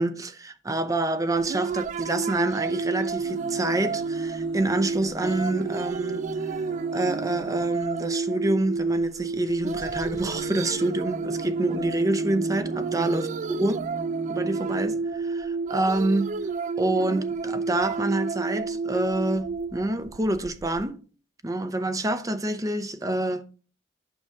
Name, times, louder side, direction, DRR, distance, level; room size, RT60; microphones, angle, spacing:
voice 1, 0.0-13.8 14.3-16.3 16.8-21.0 21.4-23.4, right 2 dB, 20° right, 0.7 m, -27 dB
sound 1, 1.3-20.8, right 4 dB, 45° right, 0.3 m, -31 dB
sound 2, 3.1-8.0 9.6-15.1 16.0-16.1 16.3-16.4, right 2 dB, 85° right, 1.7 m, -40 dB
8.9 x 6.7 x 3.6 m
head